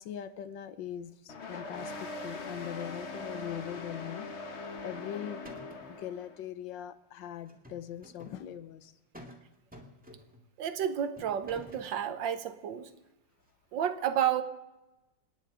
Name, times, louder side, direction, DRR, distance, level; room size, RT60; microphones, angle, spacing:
voice 1, 0.0-5.5 5.9-8.9, left 10 dB, 80° left, 13 dB, 1.5 m, -41 dB
sound 1, 1.3-6.4, left 3 dB, 40° left, 1.3 m, -41 dB
sound 2, 4.8-5.1 5.4-6.0 7.5-8.4 9.1-9.4 9.7-10.5 11.2-11.9, equal, 5° right, 1.9 m, -50 dB
voice 2, 10.6-12.9 13.7-14.4, right 9 dB, 80° right, 11 dB, 1.6 m, -31 dB
28.5 x 9.6 x 4.9 m, 1.0 s
omnidirectional pair, 2.0 m